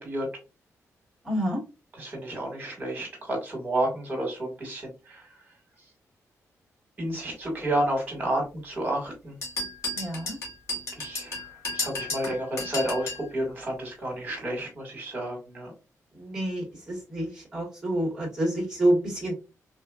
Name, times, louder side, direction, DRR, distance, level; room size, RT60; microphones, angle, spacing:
voice 1, 1.2-1.6 9.9-10.4 16.1-19.3, right 1 dB, 10° right, -3 dB, 1.7 m, -28 dB
voice 2, 2.0-5.3 7.0-9.4 11.0-15.7, right 1 dB, 30° right, 1 dB, 1.8 m, -31 dB
sound 1, 9.4-13.3, left 2 dB, 55° left, 1.6 m, -33 dB
3.5 x 2.9 x 2.4 m, 0.29 s
wide cardioid pair, 160°, 6 cm